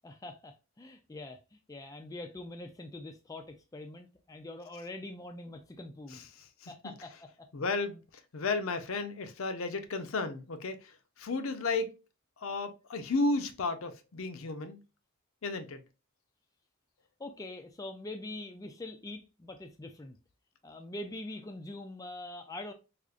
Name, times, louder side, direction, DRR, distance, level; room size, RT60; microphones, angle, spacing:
voice 1, 0.0-1.4 1.7-6.2 6.7-7.1 17.2-20.2 20.6-22.7, left 2 dB, 15° left, 0.3 m, -43 dB
voice 2, 6.1-6.7 7.5-8.0 8.3-11.9 12.4-14.8 15.4-15.8, left 3 dB, 70° left, 0.6 m, -33 dB
4.9 x 2.4 x 2.3 m
head